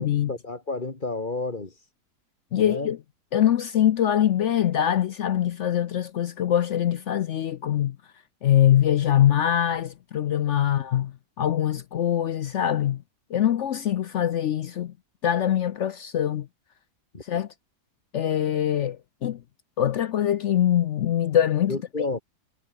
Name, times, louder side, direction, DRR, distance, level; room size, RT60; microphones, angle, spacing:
voice 1, 0.0-1.9 2.5-2.9 17.1-17.2 21.7-22.2, left 3 dB, 30° left, 2.4 m, -31 dB
voice 2, 2.5-3.0 3.3-8.0 8.4-13.0 13.3-14.9 15.2-16.5 17.3-17.5 18.1-19.0 19.2-19.4 19.8-21.8, left 10 dB, 65° left, 0.8 m, -23 dB
omnidirectional pair, 1.7 m